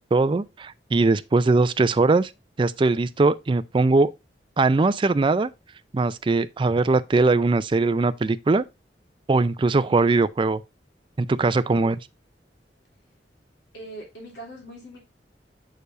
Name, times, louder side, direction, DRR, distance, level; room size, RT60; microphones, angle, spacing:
voice 1, 0.1-2.3 2.6-4.1 4.6-5.5 5.9-8.6 9.3-10.6 11.2-12.0, right 3 dB, 30° right, 0.4 m, -21 dB
voice 2, 13.7-15.0, right 1 dB, 70° left, 2.9 m, -41 dB
6.8 x 6.5 x 2.5 m
head